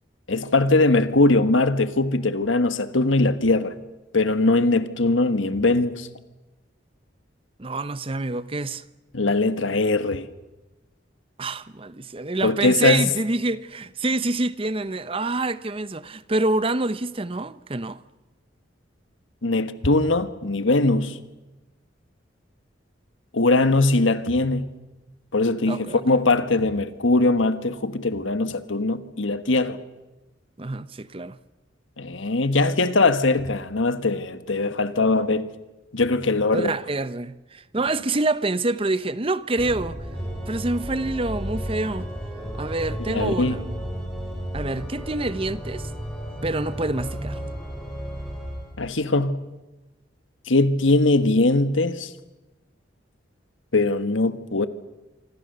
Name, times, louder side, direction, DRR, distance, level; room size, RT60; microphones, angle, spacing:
voice 1, 0.3-3.7 4.1-6.1 9.1-10.3 12.4-13.0 19.4-21.2 23.3-24.7 25.3-29.8 32.0-35.5 35.9-36.7 43.1-43.6 48.8-49.4 50.5-52.1 53.7-54.7, left 2 dB, 85° left, 1.5 m, -21 dB
voice 2, 7.6-8.8 11.4-18.0 25.7-26.0 30.6-31.4 36.5-40.0 40.5-42.1 42.5-43.6 44.5-45.9 46.4-47.4, right 2 dB, 30° right, 0.7 m, -26 dB
Organ, 39.5-48.8, equal, 5° left, 5.4 m, -33 dB
26.5 x 24.5 x 6.8 m
head